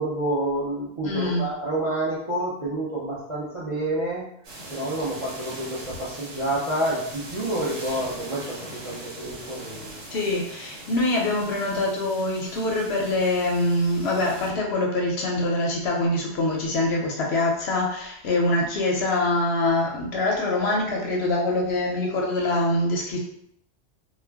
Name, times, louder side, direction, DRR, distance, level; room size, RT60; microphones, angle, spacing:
voice 1, 0.0-4.2 4.7-10.0, right 1 dB, 40° right, -7 dB, 0.5 m, -28 dB
voice 2, 1.0-1.5 10.1-23.2, left 2 dB, 65° left, -1 dB, 0.8 m, -24 dB
sound 1, 4.4-14.5, right 1 dB, 90° right, 1.1 m, -41 dB
2.4 x 2.1 x 3.3 m, 0.72 s
omnidirectional pair, 1.3 m